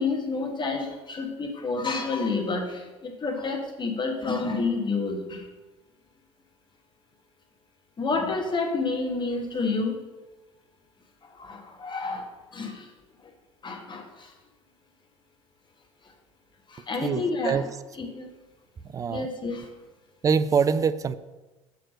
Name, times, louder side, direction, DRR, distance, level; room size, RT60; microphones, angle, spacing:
voice 1, 0.0-5.4 8.0-10.0 11.4-12.3 12.5-12.9 13.6-14.3 16.7-17.6 18.0-18.3 19.1-19.7, left 3 dB, 30° left, 3 dB, 1.4 m, -29 dB
voice 2, 17.0-17.7 18.9-19.3 20.2-21.1, right 6 dB, 20° right, 14 dB, 0.4 m, -24 dB
5.9 x 4.7 x 6.3 m, 1.1 s
figure-of-eight pair, 65°, 17 cm